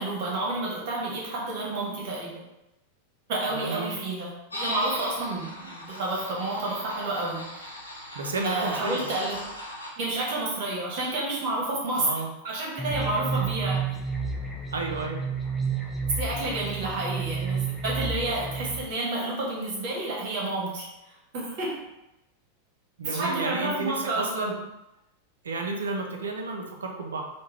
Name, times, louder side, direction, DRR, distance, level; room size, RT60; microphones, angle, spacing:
voice 1, 0.0-2.4 3.3-7.7 8.4-9.4 10.0-12.1 12.4-14.0 16.2-20.9 21.3-21.9 23.0-24.6, right 2 dB, 50° right, -4 dB, 1.2 m, -30 dB
voice 2, 3.5-3.9 8.1-9.1 11.9-12.3 14.7-15.2 23.0-24.5 25.4-27.2, right 3 dB, 70° right, 2 dB, 0.5 m, -31 dB
sound 1, 4.5-9.9, left 1 dB, 80° left, 0.6 m, -38 dB
sound 2, 12.8-18.8, right 5 dB, 5° left, 0.5 m, -30 dB
3.5 x 2.2 x 3.1 m, 0.91 s
figure-of-eight pair, 90°, 0 cm